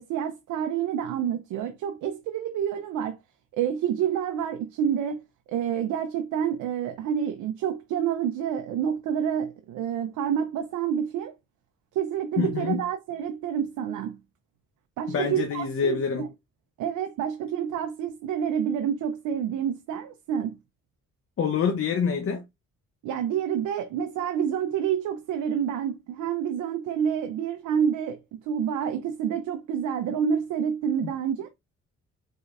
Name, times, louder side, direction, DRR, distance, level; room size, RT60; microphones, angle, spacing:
voice 1, 0.0-3.2 3.5-5.2 5.5-11.3 11.9-14.2 15.0-16.3 16.8-20.5 23.0-28.2 28.5-31.5, right 8 dB, 85° right, 0.7 m, -28 dB
voice 2, 12.4-12.8 15.1-16.2 21.4-22.4 31.0-31.1, left 6 dB, 45° left, 0.8 m, -26 dB
5.0 x 3.9 x 2.5 m
cardioid pair, 90°, 30 cm